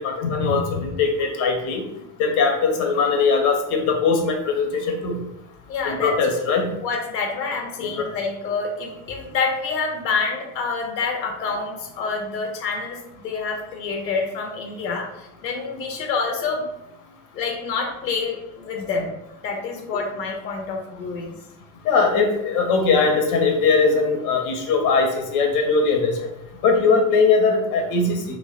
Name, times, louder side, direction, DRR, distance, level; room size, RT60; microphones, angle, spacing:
voice 1, 0.0-1.8 2.2-5.2 5.8-6.7 7.8-8.1 21.8-26.3 26.6-28.4, left 4 dB, 40° left, 4 dB, 0.6 m, -20 dB
voice 2, 5.7-6.1 6.8-16.7 17.3-19.2 19.4-21.4, left 4 dB, 80° left, 2 dB, 0.6 m, -27 dB
3.2 x 2.0 x 2.3 m, 0.84 s
figure-of-eight pair, 60°, 50 cm